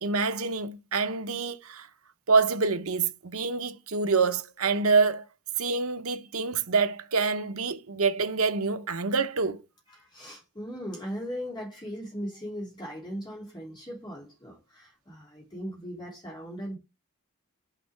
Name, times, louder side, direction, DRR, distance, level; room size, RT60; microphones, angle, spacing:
voice 1, 0.0-1.9 2.3-5.3 5.6-9.6, right 4 dB, 80° right, 0.9 m, -26 dB
voice 2, 10.0-16.8, equal, 20° left, 3.1 m, -38 dB
6.2 x 6.0 x 3.4 m
head